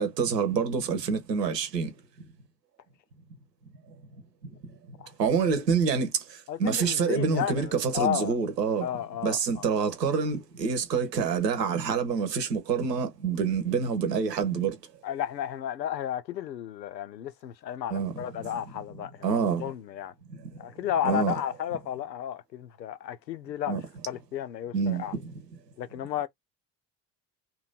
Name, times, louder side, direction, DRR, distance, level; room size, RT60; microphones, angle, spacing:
voice 1, 0.0-1.9 5.2-6.2 6.6-8.9 9.2-14.8 17.9-18.1 19.2-19.6 21.0-21.3 23.7-23.8 24.7-25.0, right 6 dB, 75° right, 1.0 m, -26 dB
voice 2, 6.5-8.4 8.8-9.7 15.0-20.1 20.6-23.8 24.1-25.1 25.8-26.3, left 10 dB, 80° left, 0.6 m, -33 dB
3.0 x 2.7 x 3.9 m
figure-of-eight pair, 60°, 50 cm